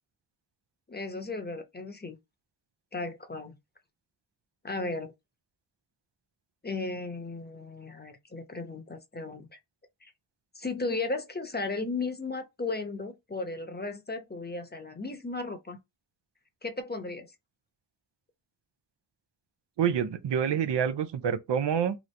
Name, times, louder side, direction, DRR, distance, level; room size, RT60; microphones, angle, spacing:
voice 1, 0.9-2.2 2.9-3.5 4.6-5.1 6.6-9.6 10.0-10.1 10.5-15.8 16.6-17.3, left 3 dB, 25° left, 0.8 m, -35 dB
voice 2, 19.8-22.0, right 8 dB, 90° right, 0.6 m, -27 dB
3.0 x 2.5 x 3.2 m
cardioid pair, 50°, 41 cm